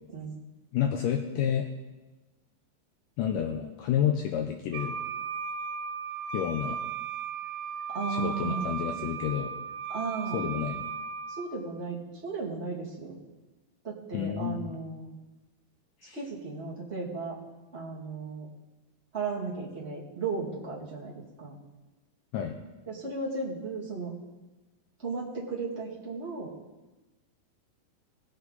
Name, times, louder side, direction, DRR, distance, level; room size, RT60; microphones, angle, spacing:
voice 1, 0.7-1.7 3.2-5.0 6.3-6.8 8.1-9.5 10.3-10.9 14.1-14.8 16.0-16.2 22.3-22.6, left 9 dB, 80° left, 4 dB, 2.0 m, -30 dB
Wind instrument woodwind instrument, 4.7-11.5, right 6 dB, 80° right, 2.9 m, -36 dB
voice 2, 7.9-8.7 9.9-10.4 11.3-13.2 13.8-15.1 16.1-17.4 17.7-18.5 19.1-21.5 22.9-24.1 25.0-26.5, right 4 dB, 25° right, -6 dB, 1.8 m, -35 dB
19.0 x 8.0 x 4.0 m, 1.1 s
omnidirectional pair, 4.4 m